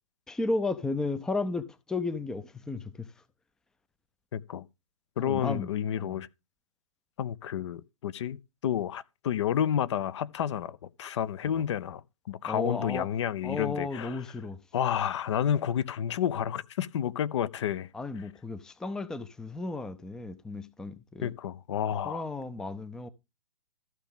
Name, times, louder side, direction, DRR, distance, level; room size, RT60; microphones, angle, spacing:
voice 1, 0.3-3.1 5.2-5.7 6.0-6.2 12.5-13.1 13.4-14.6 17.9-21.3 22.1-23.1, left 3 dB, 5° left, 0.5 m, -34 dB
voice 2, 4.3-4.6 5.2-6.3 7.2-8.4 8.6-14.2 14.7-17.9 21.2-22.2, left 9 dB, 50° left, 0.7 m, -30 dB
14.5 x 6.0 x 3.5 m
figure-of-eight pair, 125°, 19 cm